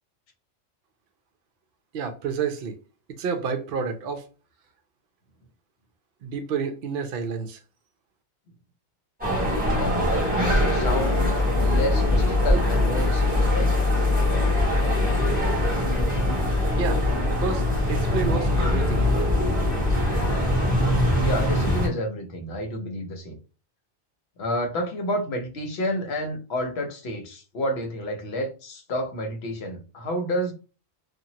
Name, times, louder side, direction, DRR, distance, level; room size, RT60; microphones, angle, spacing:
voice 1, 1.9-2.7 3.2-4.2 6.2-7.6 16.8-19.3, right 5 dB, 60° right, 0.7 m, -30 dB
sound 1, 9.2-21.9, left 1 dB, 5° right, 1.6 m, -22 dB
voice 2, 9.7-13.7 21.2-23.4 24.4-30.5, equal, 65° left, 1.0 m, -30 dB
2.9 x 2.4 x 2.7 m
omnidirectional pair, 1.2 m